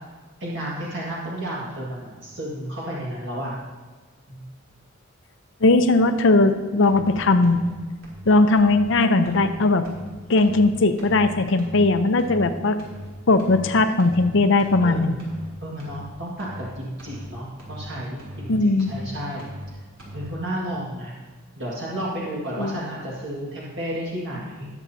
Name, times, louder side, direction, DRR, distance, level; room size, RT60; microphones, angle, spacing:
voice 1, 0.4-3.6 4.3-4.4 14.8-15.2 15.6-19.5 20.1-21.1 21.6-24.7, right 1 dB, 60° right, -6 dB, 1.9 m, -32 dB
voice 2, 5.6-7.6 8.3-9.8 10.3-12.8 13.3-15.1 18.5-18.9 22.6-22.8, left 2 dB, 65° left, 9 dB, 0.7 m, -18 dB
sound 1, 6.8-7.1 7.4-7.7 8.0-8.3 8.6-8.9 9.2-9.5 9.8-10.1 10.4-10.7 11.0-11.3 11.6-11.9 12.2-12.5 12.8-13.1 13.4-13.7 14.0-14.3 14.6-14.9 15.2-15.5 15.8-16.1 16.4-16.7 17.0-17.3 17.6-17.9 18.2-18.5 18.8-19.1 19.4-19.7 20.0-20.3, equal, 75° right, 3.2 m, -39 dB
20.0 x 7.3 x 2.8 m, 1.3 s
head